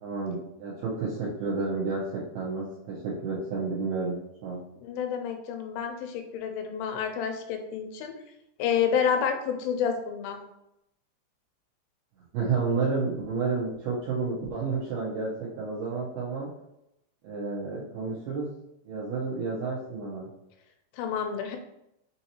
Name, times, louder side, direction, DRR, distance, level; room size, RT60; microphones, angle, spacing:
voice 1, 0.0-4.6 12.3-15.3 15.6-16.5 17.2-18.5 18.9-20.3, right 4 dB, 80° right, -7 dB, 2.2 m, -30 dB
voice 2, 4.8-8.1 8.6-10.4 20.9-21.6, left 7 dB, 85° left, 4 dB, 3.2 m, -29 dB
6.9 x 2.7 x 2.8 m, 0.84 s
omnidirectional pair, 5.6 m